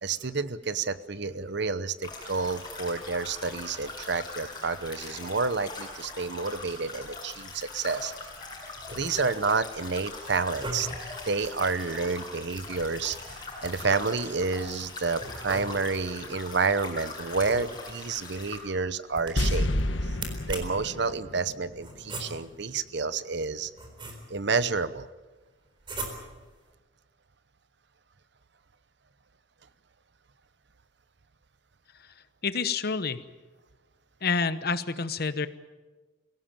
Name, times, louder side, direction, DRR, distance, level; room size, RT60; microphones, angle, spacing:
voice 1, 0.0-8.1 8.9-11.0 11.2-19.7 20.0-20.2 20.5-23.7 24.3-25.1, right 4 dB, 60° right, 15 dB, 0.9 m, -29 dB
sound 1, 2.0-18.6, left 3 dB, 25° left, 7.1 m, -41 dB
sound 2, 8.8-9.5 10.4-11.2 12.5-14.0 15.2-16.1 17.3-18.1 19.1-19.6 20.1-20.9 21.8-22.6 23.4-24.5 25.8-26.5, right 2 dB, 25° right, 4.1 m, -40 dB
sound 3, 19.4-22.6 22.8-22.9, left 1 dB, 75° left, 1.5 m, -30 dB
voice 2, 32.4-33.2 34.2-35.5, left 4 dB, 55° left, 13 dB, 1.0 m, -28 dB
24.5 x 17.0 x 9.0 m, 1.3 s
head